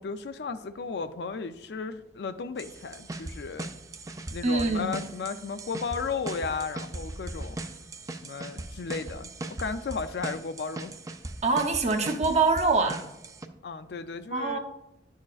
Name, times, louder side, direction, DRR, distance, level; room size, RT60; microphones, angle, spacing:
voice 1, 0.0-3.7 4.3-7.6 8.2-10.9 13.6-14.6, left 5 dB, 65° left, 0.4 m, -34 dB
sound 1, 2.6-13.5, right 2 dB, 20° right, 0.4 m, -39 dB
voice 2, 4.4-4.9 11.4-13.0 14.3-14.6, right 3 dB, 40° right, 0.8 m, -24 dB
10.5 x 6.4 x 2.4 m
head